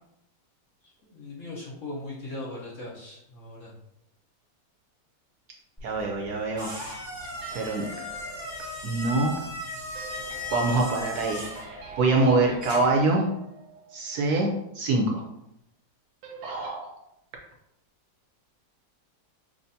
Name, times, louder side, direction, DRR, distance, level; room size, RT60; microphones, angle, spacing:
voice 1, 0.8-3.7, left 2 dB, 55° left, -5 dB, 1.0 m, -39 dB
sound 1, 5.8-13.1, left 1 dB, 10° left, 0.9 m, -38 dB
voice 2, 5.8-6.8 7.5-7.9 8.8-9.4 10.5-13.3 13.9-15.2 16.4-16.9, right 3 dB, 70° right, 0 dB, 1.0 m, -25 dB
sound 2, 7.2-14.3 14.6-14.7 16.2-16.7, right 4 dB, 90° right, 1.4 m, -45 dB
6.2 x 2.5 x 2.7 m, 0.83 s
omnidirectional pair, 2.0 m